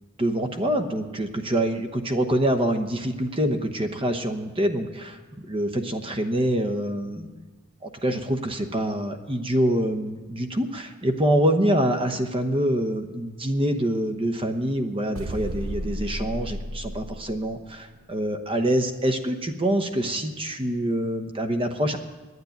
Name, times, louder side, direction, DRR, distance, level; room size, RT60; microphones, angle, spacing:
voice 1, 0.2-5.2 5.5-7.3 7.8-22.0, right 1 dB, 25° right, 7 dB, 1.0 m, -25 dB
sound 1, 15.1-17.9, equal, 80° right, 1.0 m, -33 dB
10.5 x 9.6 x 9.4 m, 1.3 s
head